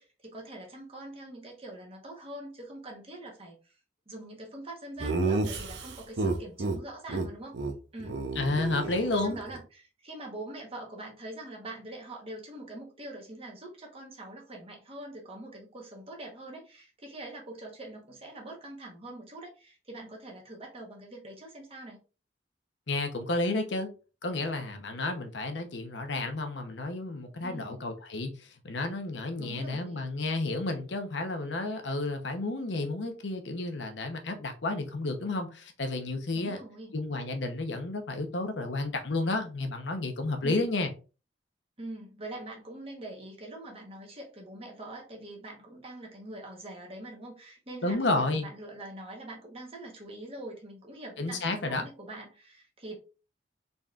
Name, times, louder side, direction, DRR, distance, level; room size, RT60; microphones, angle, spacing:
voice 1, 0.0-3.7 4.1-7.6 7.9-8.2 8.8-22.0 27.4-27.8 29.4-30.0 36.3-36.9 40.4-40.7 41.8-53.0, right 1 dB, 35° right, 1.1 m, -44 dB
Laughter, 5.0-6.8 7.1-7.3 7.5-7.7 8.0-9.6, right 3 dB, 75° right, 0.7 m, -31 dB
voice 2, 8.4-9.4 22.9-23.9 24.2-36.6 36.9-40.9 47.8-48.5 51.2-51.8, left 2 dB, 85° left, 0.8 m, -31 dB
4.0 x 3.5 x 2.4 m
head